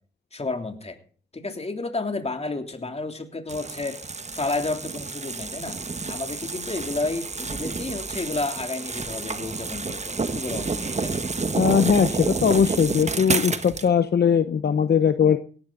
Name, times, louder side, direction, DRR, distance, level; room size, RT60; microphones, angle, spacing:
voice 1, 0.3-1.0 1.3-4.0 4.3-5.8 6.0-11.3, left 3 dB, 35° left, 5 dB, 3.1 m, -31 dB
sound 1, 3.5-13.9, right 4 dB, 40° right, 1.4 m, -29 dB
voice 2, 11.6-15.4, left 7 dB, 65° left, 10 dB, 0.9 m, -20 dB
17.5 x 13.5 x 4.0 m, 0.42 s
cardioid pair, 65°, 18 cm